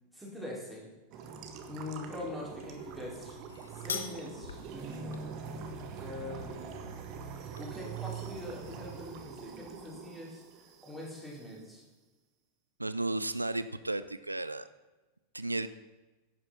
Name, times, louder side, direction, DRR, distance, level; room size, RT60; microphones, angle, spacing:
voice 1, 0.1-0.9 1.7-3.4 3.7-5.2 5.9-6.9 7.6-11.8, left 2 dB, 5° left, -5 dB, 4.7 m, -43 dB
sound 1, 1.1-11.5, right 6 dB, 40° right, 1.5 m, -44 dB
sound 2, 2.6-7.6, left 6 dB, 70° left, 1.2 m, -46 dB
voice 2, 12.8-14.7 15.3-15.7, right 2 dB, 85° right, 14 dB, 0.4 m, -33 dB
11.0 x 9.6 x 5.9 m, 1.2 s
figure-of-eight pair, 90°, 0 cm